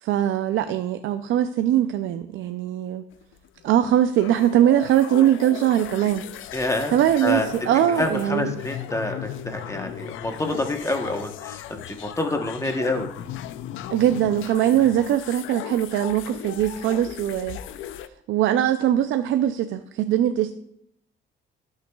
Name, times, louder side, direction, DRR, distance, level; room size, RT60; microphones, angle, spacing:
voice 1, 0.0-3.0 3.6-6.2 6.9-8.5 13.9-17.6 18.3-20.5, right 11 dB, 80° right, 9 dB, 0.5 m, -21 dB
sound 1, 3.1-18.1, left 12 dB, 80° left, 0.5 m, -36 dB
voice 2, 6.5-6.9 7.2-7.5 8.0-13.1, left 2 dB, 15° left, 4 dB, 1.0 m, -27 dB
17.5 x 6.4 x 2.3 m, 0.80 s
cardioid pair, 90°, 20 cm